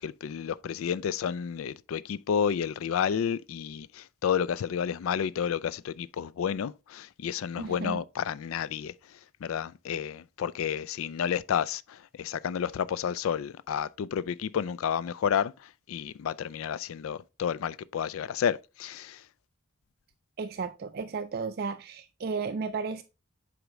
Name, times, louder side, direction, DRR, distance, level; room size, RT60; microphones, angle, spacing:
voice 1, 0.0-19.3, left 8 dB, 80° left, 0.3 m, -31 dB
voice 2, 7.6-8.0 20.4-23.0, right 4 dB, 45° right, 0.4 m, -34 dB
8.0 x 5.0 x 3.1 m
head